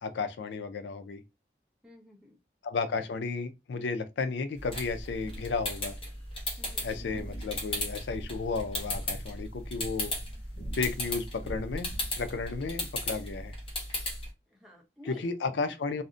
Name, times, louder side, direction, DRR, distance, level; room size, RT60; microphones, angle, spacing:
voice 1, 0.0-1.2 2.6-6.0 6.8-10.1 10.8-13.5 15.1-16.0, left 4 dB, 85° left, 0.4 m, -33 dB
voice 2, 1.8-2.4 6.6-7.0 14.5-16.0, left 2 dB, 5° right, 0.6 m, -52 dB
sound 1, 4.6-14.3, left 1 dB, 30° left, 0.7 m, -36 dB
sound 2, 7.2-12.2, right 1 dB, 60° left, 1.3 m, -42 dB
2.6 x 2.1 x 2.4 m
head